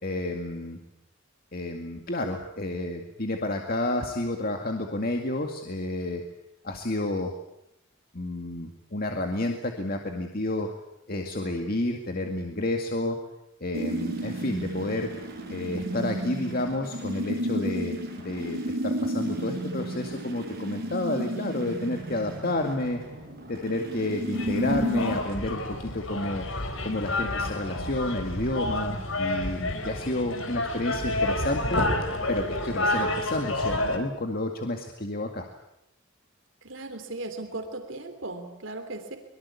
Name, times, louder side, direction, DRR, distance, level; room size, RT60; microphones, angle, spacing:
voice 1, 0.0-0.8 1.5-6.2 6.6-7.3 8.1-10.7 11.1-13.2 13.6-15.1 15.5-23.0 23.5-26.5 26.8-31.9 32.3-35.4, left 1 dB, 45° left, 3 dB, 2.2 m, -30 dB
sound 1, 13.7-25.2, equal, 45° right, 7.4 m, -32 dB
sound 2, 24.3-34.0, left 2 dB, 80° left, 4.4 m, -29 dB
voice 2, 36.6-39.2, right 2 dB, 70° right, 6 dB, 3.1 m, -37 dB
24.5 x 23.0 x 8.5 m, 0.84 s
head